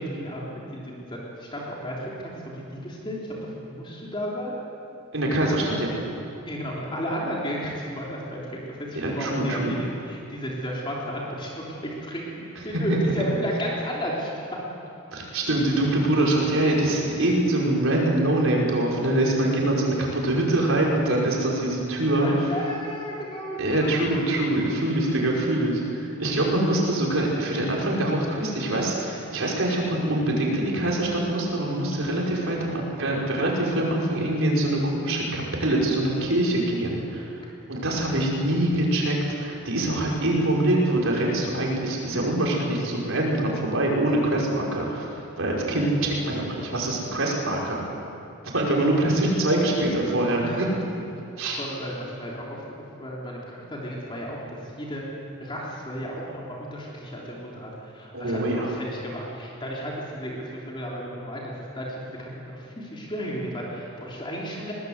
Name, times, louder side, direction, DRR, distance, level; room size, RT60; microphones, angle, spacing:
voice 1, 0.0-4.6 6.4-14.3 16.6-16.7 22.1-24.3 31.9-32.0 49.0-49.2 50.2-50.7 51.6-52.6 53.0-55.0 55.4-64.7, equal, 25° left, -4 dB, 3.4 m, -34 dB
voice 2, 5.1-5.9 8.9-9.9 12.7-12.8 15.1-22.5 23.6-37.3 37.7-45.1 45.4-47.8 48.5-50.7 51.4-51.6 58.1-58.7, right 1 dB, 65° right, -2 dB, 5.5 m, -24 dB
22.5 x 20.0 x 8.1 m, 2.7 s
head